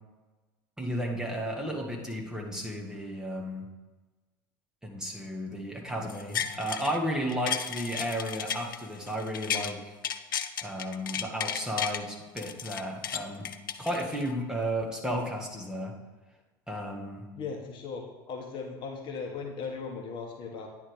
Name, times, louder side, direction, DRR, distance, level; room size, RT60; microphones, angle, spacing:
voice 1, 0.8-3.7 4.8-10.0 10.6-13.5 13.8-15.9 16.7-17.3, equal, 5° right, -1 dB, 1.7 m, -33 dB
sound 1, 6.1-7.0 7.3-9.7 10.0-12.0 12.4-14.4 14.8-14.9, left 8 dB, 75° left, 0.4 m, -34 dB
voice 2, 17.3-20.7, left 5 dB, 45° left, 2 dB, 1.2 m, -38 dB
9.9 x 3.5 x 6.5 m, 1.2 s
figure-of-eight pair, 65°, 11 cm